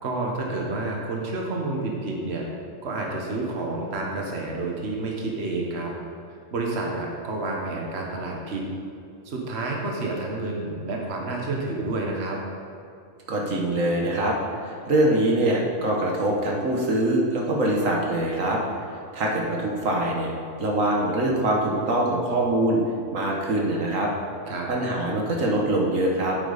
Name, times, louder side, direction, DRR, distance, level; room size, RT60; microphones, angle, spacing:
voice 1, 0.0-2.5 2.8-5.9 6.5-8.7 9.2-12.4 24.5-24.7, right 2 dB, 55° right, -1 dB, 1.4 m, -29 dB
voice 2, 13.3-14.4 14.6-18.6 19.1-20.3 20.6-22.8 23.1-24.1 24.7-26.4, right 1 dB, 75° right, -1 dB, 1.6 m, -23 dB
9.2 x 8.4 x 4.0 m, 2.5 s
omnidirectional pair, 1.4 m